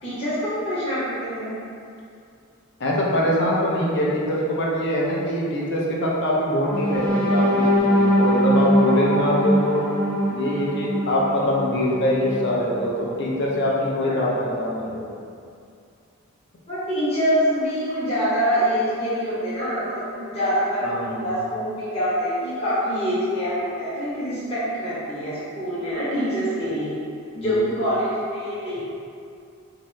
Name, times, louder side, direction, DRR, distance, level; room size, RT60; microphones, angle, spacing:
voice 1, 0.0-1.5 14.0-14.4 16.7-27.0 27.4-28.8, equal, 25° left, -12 dB, 0.9 m, -25 dB
voice 2, 2.8-9.9 10.3-15.2 20.8-21.3 27.3-27.5, left 1 dB, 55° left, -4 dB, 0.6 m, -23 dB
sound 1, 6.7-12.6 13.1-13.3 13.6-13.9, equal, 10° left, 0.5 m, -22 dB
3.6 x 2.8 x 3.2 m, 2.5 s
head